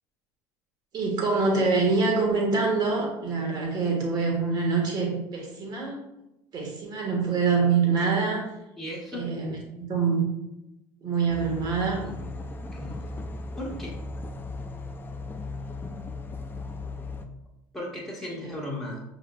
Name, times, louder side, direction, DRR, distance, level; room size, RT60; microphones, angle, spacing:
voice 1, 0.9-6.0 6.5-8.5 9.1-9.5 9.8-10.2 11.0-12.1 18.3-18.5, right 4 dB, 45° right, -1 dB, 1.6 m, -25 dB
voice 2, 8.8-9.2 12.0-12.2 12.7-13.0 13.6-14.0 17.7-19.0, left 1 dB, 5° left, -5 dB, 1.5 m, -36 dB
sound 1, 11.3-17.3, left 2 dB, 20° left, 0.5 m, -37 dB
5.4 x 3.9 x 2.3 m, 0.92 s
supercardioid pair, 90°, 10 cm